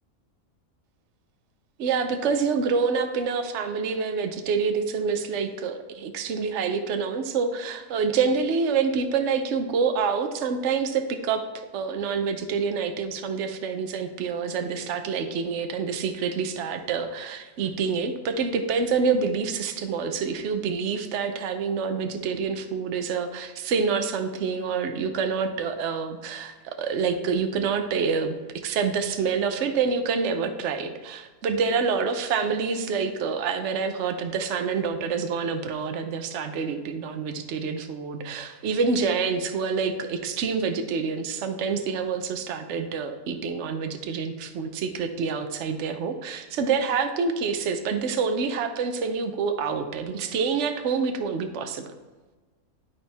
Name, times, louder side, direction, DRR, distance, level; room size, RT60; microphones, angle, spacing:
voice 1, 1.8-11.4 11.7-28.4 28.6-51.9, right 5 dB, 60° right, 7 dB, 0.9 m, -27 dB
11.5 x 4.3 x 3.4 m, 1.3 s
omnidirectional pair, 1.5 m